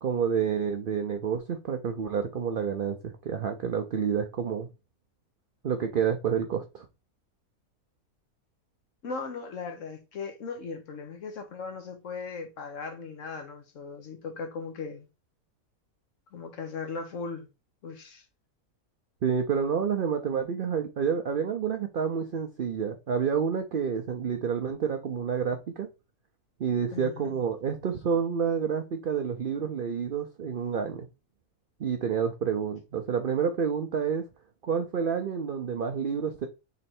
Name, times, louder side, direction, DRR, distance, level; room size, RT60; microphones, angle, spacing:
voice 1, 0.0-4.7 5.6-6.9 19.2-25.9 26.6-31.1 31.8-34.2 34.6-36.5, right 7 dB, 70° right, 0.5 m, -29 dB
voice 2, 9.0-15.1 16.3-17.5 17.8-18.2 26.9-27.3, left 4 dB, 60° left, 1.2 m, -38 dB
3.9 x 3.2 x 4.3 m
omnidirectional pair, 1.6 m